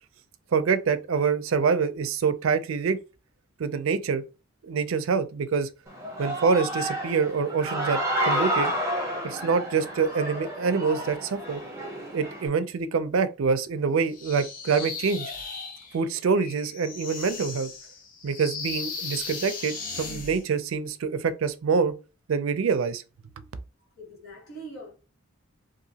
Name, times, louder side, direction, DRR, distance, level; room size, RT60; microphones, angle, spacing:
voice 1, 0.5-3.0 3.6-4.2 4.6-5.7 6.2-8.0 8.3-8.7 9.2-11.6 12.1-15.3 15.9-17.7 18.2-21.9 22.3-23.0, right 5 dB, 70° right, 0.4 m, -25 dB
Human voice / Cheering, 5.9-12.5, equal, 15° right, 0.6 m, -30 dB
sound 1, 14.1-20.4, left 4 dB, 40° left, 0.6 m, -37 dB
voice 2, 24.0-24.9, right 2 dB, 80° left, 1.5 m, -42 dB
2.8 x 2.5 x 2.7 m
head